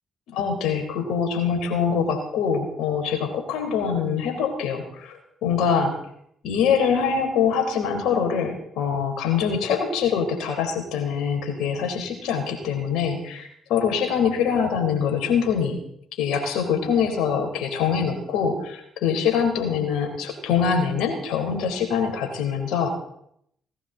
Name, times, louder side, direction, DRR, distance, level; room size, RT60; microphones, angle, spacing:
voice 1, 0.3-5.9 6.4-15.8 16.2-22.9, left 6 dB, 75° left, 4 dB, 3.9 m, -24 dB
18.5 x 17.5 x 4.0 m, 0.74 s
hypercardioid pair, 45°, 0 cm